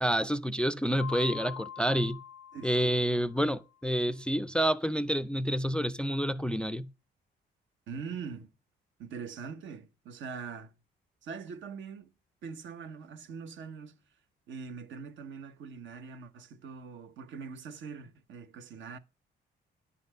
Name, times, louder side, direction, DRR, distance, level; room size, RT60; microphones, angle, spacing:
voice 1, 0.0-2.2 2.6-6.9, equal, 5° left, 0.4 m, -28 dB
Mallet percussion, 1.0-3.6, left 9 dB, 75° left, 0.5 m, -44 dB
voice 2, 2.5-3.3 7.9-8.5 9.0-10.7 11.2-12.1 12.4-14.0 14.5-19.0, right 5 dB, 70° right, 1.0 m, -43 dB
10.0 x 4.2 x 6.5 m
cardioid pair, 90°, 20 cm